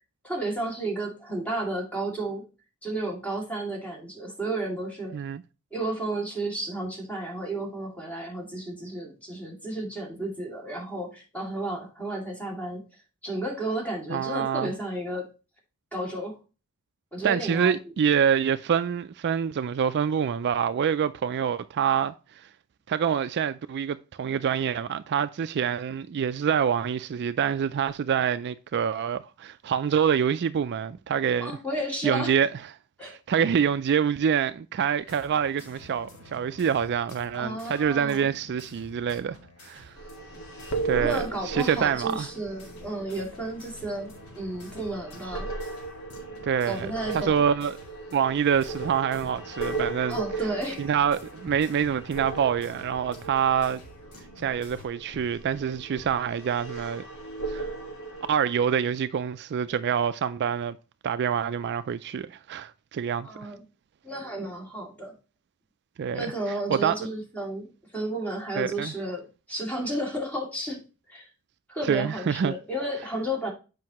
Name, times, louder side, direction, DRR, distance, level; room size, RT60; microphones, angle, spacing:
voice 1, 0.2-2.4 2.8-5.2 5.7-12.8 13.2-15.3 15.9-16.4 17.1-17.8 31.4-32.3 33.0-33.1 37.3-38.3 41.0-44.1 44.4-45.5 46.6-47.4 50.1-50.9 63.2-63.6 64.0-65.1 66.1-70.8 71.1-71.3 71.7-73.5, right 1 dB, 5° left, 2.3 m, -32 dB
voice 2, 14.1-14.7 17.2-22.5 22.9-31.5 32.0-32.5 33.0-39.4 39.6-39.9 40.8-42.3 46.4-47.8 48.1-50.2 50.8-53.8 54.4-57.0 57.5-57.7 58.3-60.8 61.0-63.5 66.0-66.3 66.7-67.0 68.6-68.9 71.9-72.5, right 7 dB, 50° right, 0.3 m, -26 dB
sound 1, 35.0-54.9, left 2 dB, 85° left, 2.5 m, -50 dB
sound 2, 40.0-58.3, right 3 dB, 65° left, 1.8 m, -37 dB
7.6 x 5.3 x 2.9 m
head